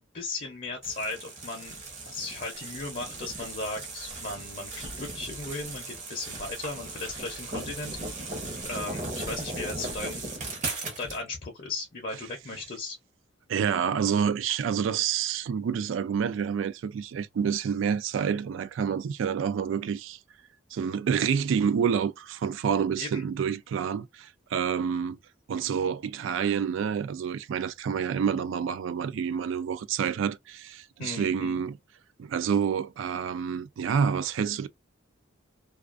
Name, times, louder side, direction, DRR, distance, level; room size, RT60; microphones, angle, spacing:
voice 1, 0.1-1.8 2.1-8.0 8.6-10.3 11.0-13.0 23.0-23.2 31.0-31.6, left 3 dB, 40° left, 0.5 m, -36 dB
sound 1, 0.8-11.2, right 2 dB, 35° right, 0.7 m, -37 dB
voice 2, 13.5-20.2 20.7-25.2 25.5-31.8 32.2-34.7, right 7 dB, 70° right, 0.3 m, -28 dB
2.3 x 2.3 x 2.3 m
head